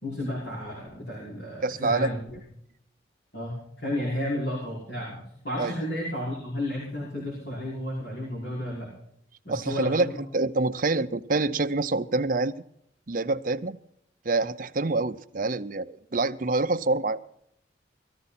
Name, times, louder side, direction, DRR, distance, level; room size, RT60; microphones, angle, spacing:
voice 1, 0.0-2.4 3.3-8.9 9.4-10.2, left 1 dB, 60° left, 5.6 m, -32 dB
voice 2, 1.6-2.1 5.6-5.7 9.5-10.1 10.3-12.5 13.1-13.8 14.2-17.2, right 3 dB, 45° right, 0.6 m, -26 dB
18.5 x 14.5 x 4.3 m
head